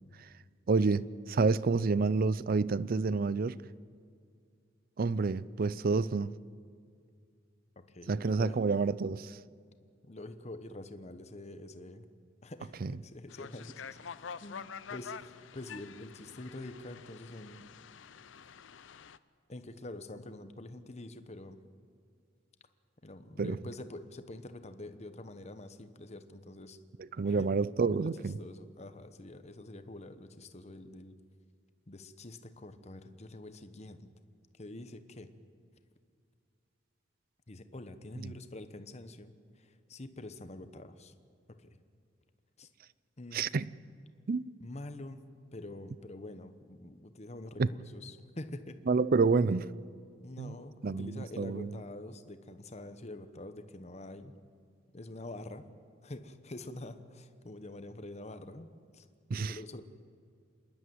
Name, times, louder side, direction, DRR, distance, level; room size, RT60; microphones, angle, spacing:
voice 1, 0.7-3.6 5.0-6.3 8.1-9.4 12.8-12.9 23.4-23.6 27.0-28.4 38.2-38.3 43.3-43.7 44.3-44.4 47.6-47.7 48.9-49.7 50.4-50.6 50.8-51.7 59.3-59.6, right 4 dB, 50° right, 0.5 m, -29 dB
voice 2, 7.8-8.8 10.0-12.1 12.4-13.8 14.4-17.7 19.5-21.6 23.0-26.8 27.2-27.5 27.9-31.2 31.9-34.1 34.6-35.3 37.5-41.1 41.5-41.7 42.6-42.7 43.2-43.5 44.6-45.3 45.5-48.8 50.2-54.3 54.9-55.7 56.0-58.7 58.9-59.1 59.3-59.8, left 2 dB, 35° left, 1.0 m, -46 dB
sound 1, 13.3-19.2, left 6 dB, 80° left, 0.6 m, -47 dB
27.0 x 11.5 x 9.3 m
head